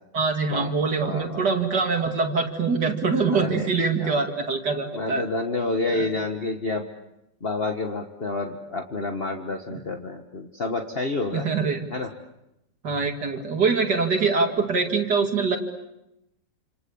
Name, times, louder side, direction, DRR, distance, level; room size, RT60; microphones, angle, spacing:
voice 1, 0.1-5.3 5.9-6.0 9.7-9.8 11.3-11.9 12.8-15.6, right 4 dB, 65° right, 4 dB, 2.8 m, -24 dB
voice 2, 1.0-1.4 3.3-3.7 4.0-4.2 4.9-6.8 7.4-11.4 11.9-12.1, left 3 dB, 35° left, 4 dB, 1.7 m, -29 dB
28.5 x 27.5 x 7.1 m, 0.88 s
omnidirectional pair, 1.9 m